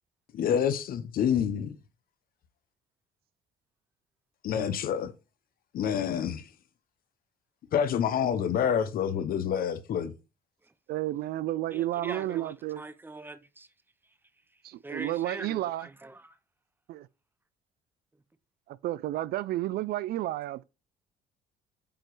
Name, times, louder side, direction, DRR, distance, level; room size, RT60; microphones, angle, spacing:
voice 1, 0.3-1.8 4.4-5.1 5.7-6.5 7.7-10.1, left 8 dB, 60° left, 1.0 m, -27 dB
voice 2, 10.9-12.8 14.6-15.9 16.9-17.1 18.7-20.6, right 15 dB, 65° right, 0.4 m, -31 dB
voice 3, 11.7-13.7 14.8-16.4, right 2 dB, 10° right, 0.6 m, -43 dB
8.8 x 3.0 x 4.7 m
cardioid pair, 110°, 17 cm